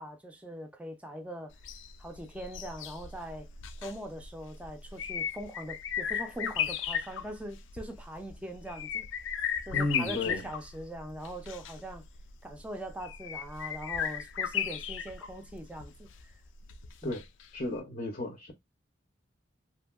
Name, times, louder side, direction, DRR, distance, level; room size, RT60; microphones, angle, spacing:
voice 1, 0.0-1.5 2.0-3.5 3.8-9.3 9.7-12.1 12.4-16.3 17.0-17.2, right 1 dB, 5° right, 0.5 m, -42 dB
sound 1, 1.5-17.5 17.8-17.9, left 8 dB, 90° left, 0.4 m, -36 dB
voice 2, 9.7-10.4 17.0-17.2 17.5-18.5, left 2 dB, 40° left, 0.6 m, -33 dB
2.8 x 2.7 x 2.3 m
head